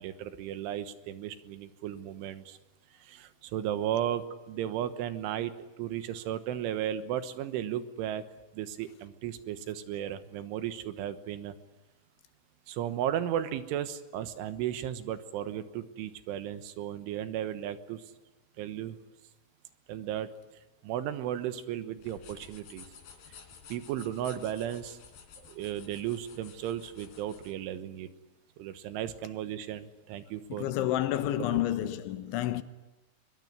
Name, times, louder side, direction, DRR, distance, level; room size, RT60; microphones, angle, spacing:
voice 1, 0.0-2.6 3.0-8.2 8.5-11.6 12.7-18.1 18.6-19.0 19.9-20.3 20.8-22.9 23.7-25.0 25.4-28.1 28.6-30.8 31.8-31.9, right 11 dB, 85° right, 3.7 m, -35 dB
sound 1, 21.9-27.6, left 6 dB, 60° left, 4.8 m, -52 dB
voice 2, 30.6-32.6, left 13 dB, 80° left, 3.3 m, -29 dB
23.0 x 22.0 x 10.0 m
omnidirectional pair, 5.6 m